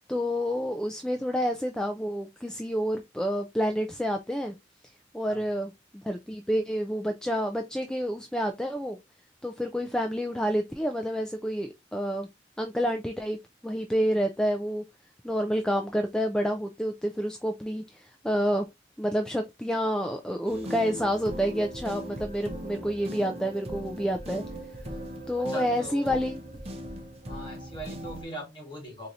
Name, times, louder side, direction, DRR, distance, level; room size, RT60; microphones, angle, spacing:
voice 1, 0.1-4.5 5.1-9.0 9.4-12.3 12.6-13.4 13.6-14.8 15.2-18.7 19.0-24.4 25.3-26.6, equal, 5° left, 0.3 m, -29 dB
sound 1, 20.5-28.2, equal, 35° right, 0.7 m, -39 dB
voice 2, 25.4-26.2 27.3-29.1, right 1 dB, 25° left, 1.5 m, -40 dB
4.5 x 2.7 x 2.4 m
head